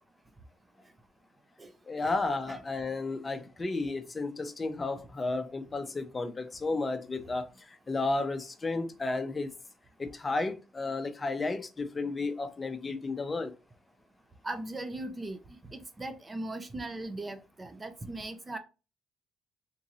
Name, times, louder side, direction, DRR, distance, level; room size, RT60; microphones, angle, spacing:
voice 1, 1.9-9.5 10.0-13.5, left 3 dB, 30° left, 0.7 m, -33 dB
voice 2, 14.4-18.6, right 2 dB, 25° right, 0.6 m, -39 dB
3.7 x 2.9 x 2.7 m
cardioid pair, 90°, 0 cm